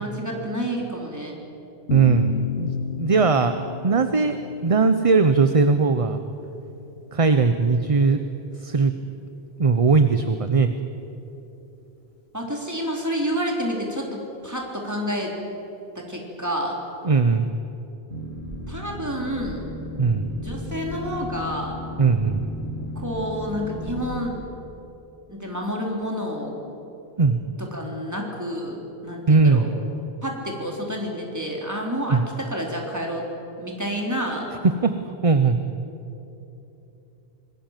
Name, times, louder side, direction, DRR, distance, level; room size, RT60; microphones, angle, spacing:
voice 1, 0.0-1.4 12.3-15.3 16.0-16.8 18.7-19.6 20.4-21.8 23.0-24.5 25.3-26.6 27.6-29.7 30.2-33.2 33.6-34.5, equal, 15° right, -1 dB, 3.9 m, -29 dB
sound 1, 1.9-8.4, left 6 dB, 85° left, 1.2 m, -32 dB
voice 2, 1.9-2.7 3.0-3.5 3.8-4.4 4.6-6.2 7.1-8.2 8.6-8.9 9.6-10.7 17.0-17.5 20.0-20.3 22.0-22.4 27.2-27.4 29.3-29.7 32.1-32.2 34.8-34.9 35.2-35.6, right 4 dB, 35° right, 9 dB, 0.8 m, -19 dB
Boat Water vehicle, 18.1-24.1, left 1 dB, 80° right, 2.8 m, -35 dB
26.0 x 20.0 x 7.5 m, 2.9 s
omnidirectional pair, 1.0 m